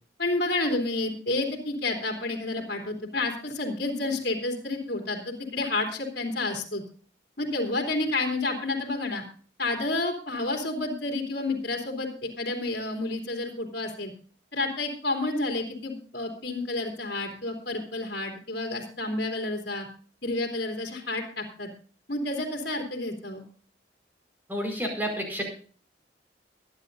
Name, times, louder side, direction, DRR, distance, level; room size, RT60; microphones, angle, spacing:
voice 1, 0.2-6.8 7.4-9.2 9.6-14.1 14.5-19.9 20.2-21.7 22.1-23.4, left 2 dB, 60° left, 2 dB, 3.2 m, -30 dB
voice 2, 24.5-25.4, equal, 10° right, 1 dB, 5.0 m, -30 dB
23.0 x 10.0 x 2.7 m, 0.43 s
head